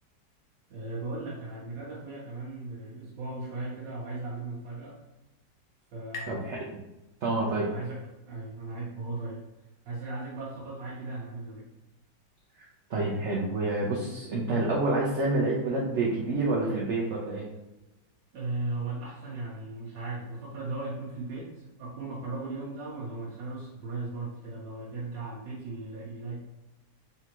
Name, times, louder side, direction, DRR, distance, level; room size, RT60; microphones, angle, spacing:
voice 1, 0.7-5.0 5.9-6.6 7.5-9.4 9.8-11.7 18.3-26.5, right 2 dB, 75° right, -6 dB, 1.5 m, -37 dB
sound 1, 4.7-8.0, left 3 dB, 65° left, 1.0 m, -48 dB
voice 2, 6.3-6.6 7.2-7.7 12.6-17.5, right 2 dB, 60° right, -4 dB, 0.8 m, -28 dB
3.7 x 3.4 x 2.9 m, 0.98 s
omnidirectional pair, 1.9 m